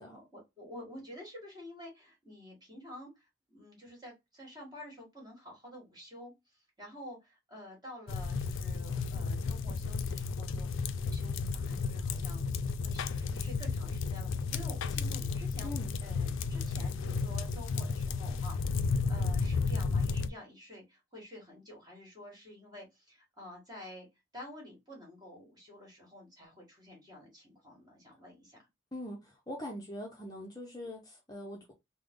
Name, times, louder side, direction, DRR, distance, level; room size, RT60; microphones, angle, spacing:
voice 1, 0.1-24.1 24.3-28.6, left 1 dB, 20° right, 1.5 m, -50 dB
sound 1, 8.1-20.3, left 4 dB, 70° left, 0.3 m, -33 dB
voice 2, 15.6-15.9 28.9-31.7, left 1 dB, 20° left, 0.5 m, -42 dB
3.3 x 2.0 x 3.5 m
head